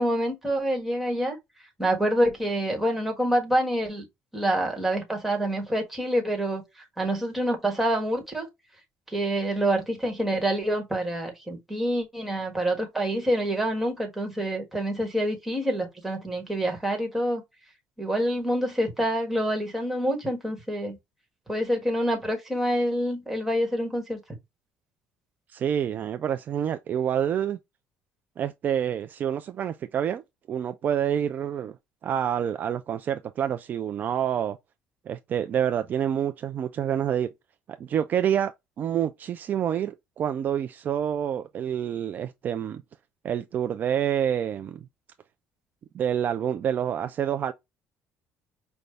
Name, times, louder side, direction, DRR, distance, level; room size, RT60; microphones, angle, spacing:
voice 1, 0.0-1.4 1.8-4.0 4.3-6.6 7.0-8.5 9.1-17.4 18.0-21.0 21.5-24.2, right 1 dB, 5° right, 1.4 m, -26 dB
voice 2, 25.5-27.6 28.4-30.2 30.5-31.8 32.0-34.6 35.1-37.3 37.8-38.5 38.8-42.8 43.2-44.8 45.9-47.5, right 9 dB, 40° right, 0.3 m, -27 dB
5.2 x 2.3 x 3.2 m
cardioid pair, 140°, 5 cm